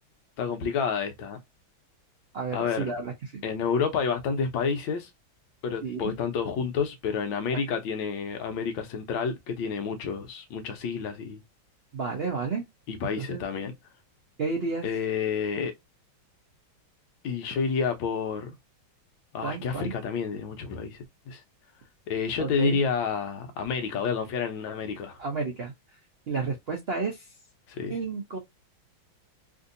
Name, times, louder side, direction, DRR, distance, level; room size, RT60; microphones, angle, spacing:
voice 1, 0.4-1.4 2.5-2.9 3.4-5.1 5.6-11.4 12.9-13.7 14.8-15.7 17.2-18.5 19.3-21.0 21.3-21.4 22.1-25.2 27.7-27.9, left 6 dB, 75° left, 1.5 m, -29 dB
voice 2, 2.3-3.4 5.8-6.1 11.9-12.7 13.2-13.4 14.4-14.9 19.4-19.9 22.4-22.8 25.2-25.7 26.3-27.3 27.9-28.4, right 4 dB, 85° right, 0.5 m, -31 dB
3.7 x 2.6 x 2.6 m
omnidirectional pair, 2.2 m